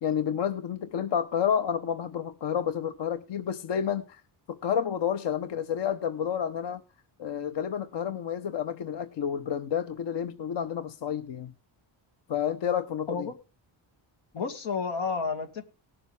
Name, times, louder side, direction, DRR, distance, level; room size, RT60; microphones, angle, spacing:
voice 1, 0.0-4.2 4.5-6.8 7.2-11.5 12.3-13.3, left 8 dB, 65° left, 0.9 m, -30 dB
voice 2, 14.3-15.6, left 5 dB, 90° left, 2.1 m, -31 dB
18.5 x 7.0 x 3.4 m
cardioid pair, 100°, 46 cm